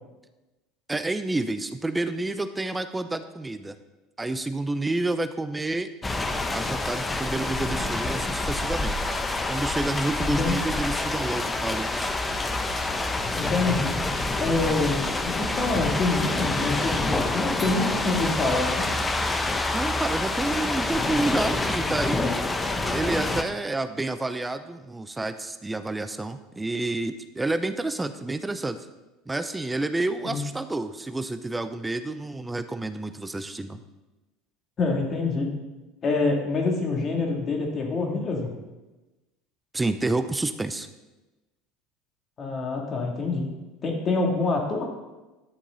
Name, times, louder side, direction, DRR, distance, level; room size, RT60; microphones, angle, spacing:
voice 1, 0.9-3.8 4.2-5.9 6.5-9.0 9.5-12.1 19.7-22.3 22.9-28.8 29.3-33.8 39.7-40.9, right 2 dB, 15° right, 10 dB, 0.7 m, -29 dB
sound 1, 6.0-23.4, left 2 dB, 20° left, 0.9 m, -27 dB
voice 2, 10.2-10.6 13.4-13.9 14.4-18.9 30.2-30.4 34.8-35.5 36.0-38.5 42.4-43.5 43.8-44.9, left 3 dB, 40° left, 1 dB, 2.5 m, -26 dB
11.5 x 7.1 x 4.0 m, 1.1 s
hypercardioid pair, 80°, 0 cm